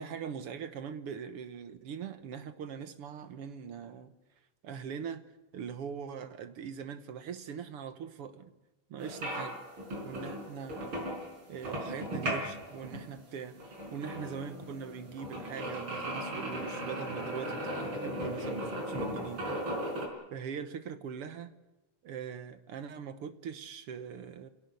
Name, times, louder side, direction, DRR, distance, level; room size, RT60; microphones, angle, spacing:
voice 1, 0.0-4.1 4.6-5.3 5.5-8.5 8.9-9.6 10.0-11.1 11.5-13.6 13.9-19.4 20.3-21.5 22.0-24.5, right 7 dB, 60° right, 1.7 m, -41 dB
sound 1, 9.0-20.1, equal, 40° right, 5.6 m, -37 dB
27.0 x 17.5 x 8.3 m
omnidirectional pair, 3.5 m